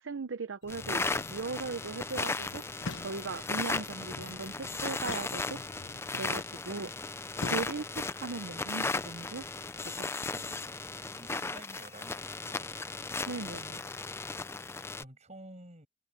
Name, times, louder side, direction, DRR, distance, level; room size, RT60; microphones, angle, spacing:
voice 1, 0.0-2.6 3.0-5.6 6.1-6.9 7.5-9.4 10.0-10.4 13.3-13.8, right 4 dB, 85° right, 0.8 m, -38 dB
sound 1, 0.6-6.4, left 4 dB, 70° left, 0.8 m, -52 dB
sound 2, 0.7-15.0, left 3 dB, 15° left, 0.5 m, -36 dB
sound 3, 2.8-3.5 5.0-6.0 7.4-8.2, left 3 dB, 90° left, 1.1 m, -42 dB
voice 2, 11.1-12.7 15.0-15.9, right 1 dB, 40° right, 6.7 m, -51 dB
open air
head